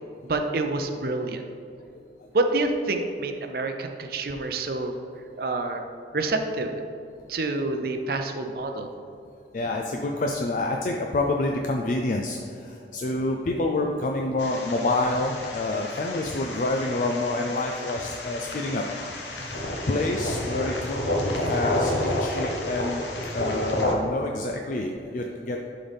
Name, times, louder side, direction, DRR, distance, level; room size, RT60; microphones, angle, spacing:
voice 1, 0.2-1.4 2.3-5.0 5.4-5.8 6.1-6.7 7.3-8.9 19.4-19.5, right 2 dB, 55° right, 5 dB, 0.5 m, -27 dB
voice 2, 9.5-19.6 19.9-21.0 21.2-21.9 22.2-23.0 23.3-25.7, left 2 dB, 45° left, 2 dB, 0.4 m, -28 dB
sound 1, 14.4-23.9, left 1 dB, 80° left, 1.0 m, -30 dB
11.0 x 3.8 x 3.5 m, 2.5 s
head